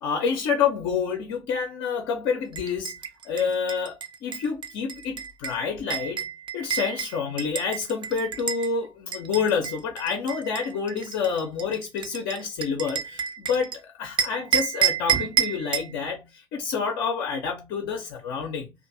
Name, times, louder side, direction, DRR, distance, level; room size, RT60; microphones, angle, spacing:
voice 1, 0.0-2.9 3.3-18.7, left 6 dB, 65° left, 0.5 m, -28 dB
sound 1, 2.5-8.7 9.1-13.8 14.2-15.9, right 8 dB, 40° right, 0.5 m, -29 dB
2.5 x 2.4 x 2.5 m
figure-of-eight pair, 45°, 12 cm